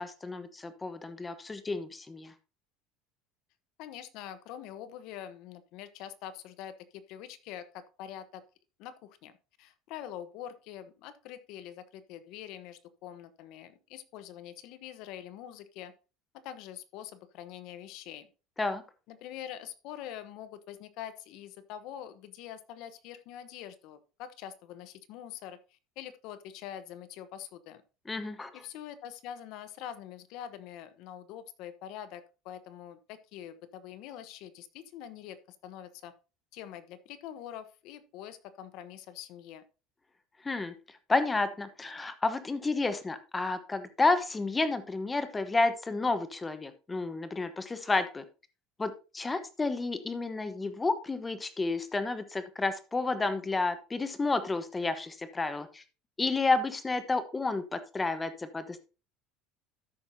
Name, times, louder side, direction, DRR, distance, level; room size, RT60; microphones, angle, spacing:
voice 1, 0.0-2.3 18.6-18.8 28.1-28.5 40.4-48.2 48.8-55.8 56.2-58.8, left 3 dB, 15° left, 10 dB, 1.0 m, -31 dB
voice 2, 3.8-8.4 8.8-9.3 9.6-15.9 16.3-18.3 19.1-27.8 28.5-36.1 36.5-39.6, left 10 dB, 65° left, 13 dB, 1.0 m, -45 dB
13.5 x 5.7 x 2.7 m, 0.32 s
cardioid pair, 135°, 0 cm